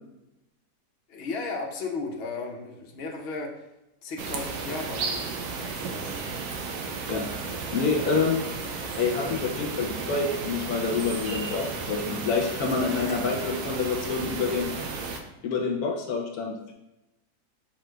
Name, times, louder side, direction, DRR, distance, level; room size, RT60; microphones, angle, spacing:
voice 1, 1.1-3.7 4.0-5.1 5.5-6.2 12.9-13.3, left 3 dB, 50° left, 0 dB, 0.8 m, -35 dB
sound 1, 4.2-15.2, right 4 dB, 90° right, 1.2 m, -34 dB
voice 2, 7.5-8.4 9.0-14.7 15.4-16.7, left 4 dB, 75° left, 1 dB, 1.1 m, -27 dB
6.1 x 3.7 x 2.2 m, 0.96 s
omnidirectional pair, 1.7 m